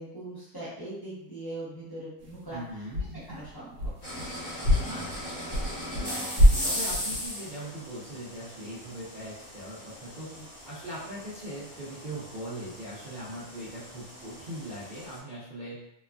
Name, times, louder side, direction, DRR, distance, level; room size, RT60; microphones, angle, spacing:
voice 1, 0.0-2.6 3.3-3.9 4.7-4.9 10.3-10.5, right 1 dB, 20° left, -11 dB, 0.7 m, -41 dB
sound 1, 2.2-2.6 2.9-4.3 4.6-6.1 6.4-7.3, equal, 65° right, 0.8 m, -25 dB
voice 2, 2.5-3.0 4.9-5.3 5.9-10.4 10.7-15.8, right 1 dB, 85° right, -10 dB, 0.4 m, -40 dB
sound 2, 4.0-15.2, equal, 40° left, 1.1 m, -38 dB
3.0 x 2.2 x 2.3 m, 0.79 s
omnidirectional pair, 1.7 m